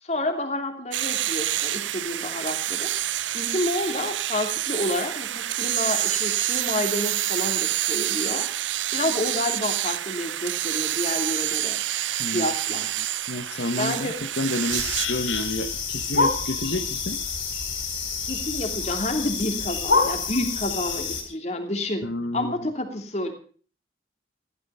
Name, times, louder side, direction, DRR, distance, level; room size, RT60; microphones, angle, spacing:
voice 1, 0.0-2.9 3.3-8.5 8.9-11.8 12.3-12.9 13.8-14.1 18.2-22.1 22.3-23.3, left 1 dB, 35° left, 5 dB, 2.9 m, -29 dB
sound 1, 0.9-15.1, right 13 dB, 85° right, 0.7 m, -27 dB
voice 2, 13.3-17.2 22.0-22.7, left 1 dB, 65° left, 7 dB, 1.3 m, -30 dB
sound 2, 14.7-21.2, left 4 dB, 85° left, 4.9 m, -27 dB
15.5 x 13.5 x 5.5 m, 0.42 s
head